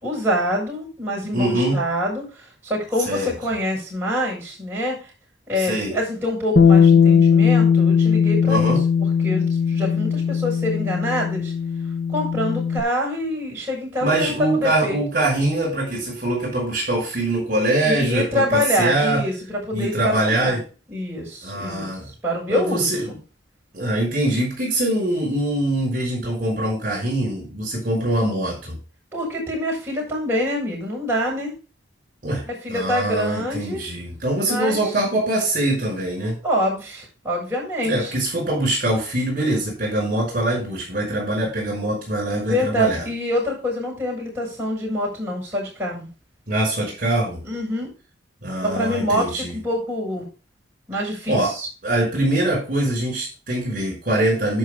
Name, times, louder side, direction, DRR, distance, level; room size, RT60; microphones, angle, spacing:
voice 1, 0.0-2.2 2.6-5.0 5.5-8.7 9.2-11.5 12.1-15.0 17.8-20.6 20.9-21.9 22.2-23.2 29.1-31.5 32.5-33.8 34.5-34.8 36.4-38.1 42.4-46.1 47.4-47.9 48.6-50.3 50.9-51.7, equal, 10° right, -5 dB, 6.8 m, -25 dB
voice 2, 1.3-1.8 3.1-3.3 5.6-6.0 8.4-8.8 14.0-19.2 19.7-20.6 21.4-22.1 22.5-23.1 23.7-28.8 32.2-36.4 37.8-43.1 46.5-47.4 48.4-49.6 51.3-51.5 51.8-54.6, right 1 dB, 45° right, -3 dB, 5.6 m, -23 dB
Bass guitar, 6.6-12.8, left 6 dB, 65° left, 1.1 m, -18 dB
11.0 x 5.6 x 5.2 m, 0.32 s
head